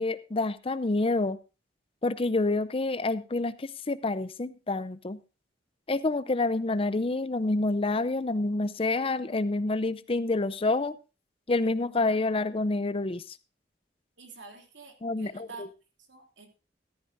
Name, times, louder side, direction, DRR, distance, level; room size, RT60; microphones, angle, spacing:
voice 1, 0.0-1.4 2.0-5.2 5.9-11.0 11.5-13.4 15.0-15.7, left 2 dB, 30° left, 15 dB, 0.6 m, -28 dB
voice 2, 14.2-15.7 16.1-16.5, right 4 dB, 80° right, 3 dB, 3.0 m, -47 dB
14.0 x 13.5 x 2.6 m, 0.30 s
head